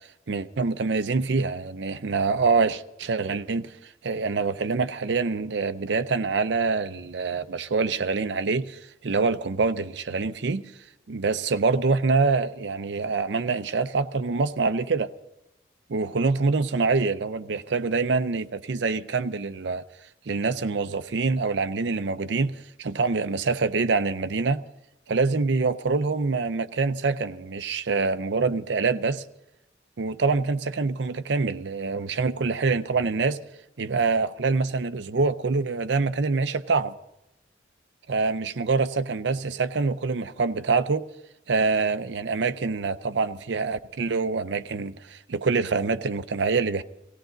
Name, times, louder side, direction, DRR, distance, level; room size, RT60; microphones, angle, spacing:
voice 1, 0.3-3.7 4.0-10.6 11.1-15.1 15.9-19.8 20.3-22.5 22.8-24.6 25.1-29.2 30.0-33.4 33.8-36.9 38.1-41.0 41.5-46.8, right 4 dB, 75° right, 0.5 m, -25 dB
18.0 x 16.5 x 3.9 m
head